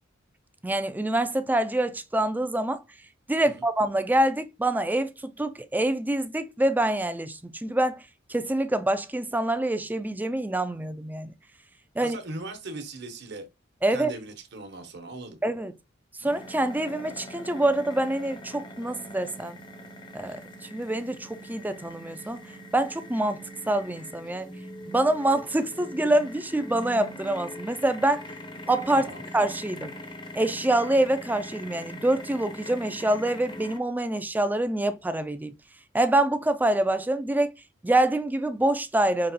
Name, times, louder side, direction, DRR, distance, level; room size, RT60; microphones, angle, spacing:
voice 1, 0.6-2.8 3.3-8.0 8.3-11.3 12.0-12.2 13.8-14.1 15.4-15.7 16.2-19.6 20.1-20.4 20.7-22.4 22.7-24.5 24.9-28.2 28.7-29.1 29.3-29.9 30.3-35.5 35.9-37.5 37.8-39.3, right 1 dB, 10° right, 0.4 m, -26 dB
voice 2, 12.0-13.4 13.9-15.4 28.9-29.3, right 2 dB, 60° right, 1.1 m, -38 dB
sound 1, 16.3-33.8, equal, 25° left, 0.7 m, -42 dB
5.2 x 3.0 x 2.8 m
head